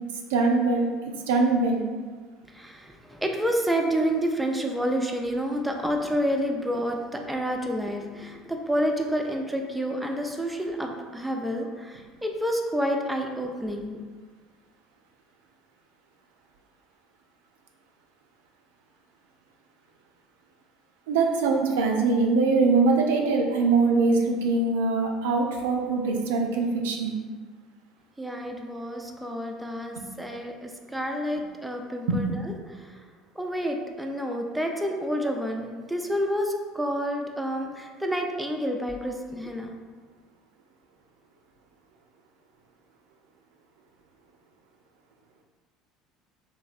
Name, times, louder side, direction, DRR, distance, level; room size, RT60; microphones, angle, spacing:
voice 1, 0.3-0.9 1.3-1.8 21.1-27.2 30.0-30.1 32.1-32.2, right 3 dB, 80° right, 1 dB, 0.3 m, -22 dB
voice 2, 2.5-14.0 28.2-32.3 32.7-33.0 33.4-39.7, equal, 5° right, 2 dB, 0.4 m, -29 dB
3.0 x 2.6 x 2.4 m, 1.5 s
hypercardioid pair, 70°, 0 cm